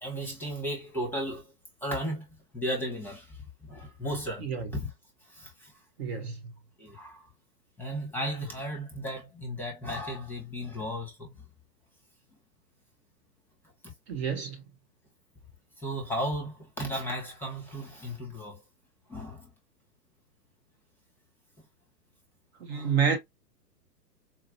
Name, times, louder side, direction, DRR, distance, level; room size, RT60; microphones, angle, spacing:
voice 1, 0.0-1.5 1.8-2.2 2.5-3.4 3.6-4.5 4.7-4.9 5.3-5.7 6.8-7.3 7.8-11.3 13.8-13.9 15.8-18.6 19.1-19.5 22.7-22.9, equal, 5° left, 1.0 m, -35 dB
voice 2, 4.4-4.7 6.0-6.4 14.1-14.6 22.6-23.2, right 6 dB, 40° right, 0.8 m, -28 dB
4.3 x 2.4 x 2.5 m
figure-of-eight pair, 120°, 49 cm